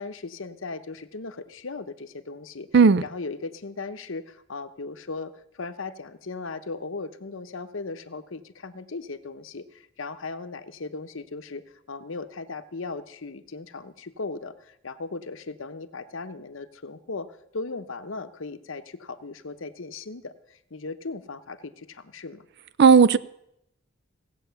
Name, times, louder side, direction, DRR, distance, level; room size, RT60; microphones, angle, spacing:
voice 1, 0.0-2.7 3.0-11.6 11.9-22.5, left 3 dB, 75° left, 0.9 m, -37 dB
voice 2, 22.8-23.2, right 5 dB, 55° right, 0.5 m, -14 dB
17.0 x 8.4 x 6.9 m
head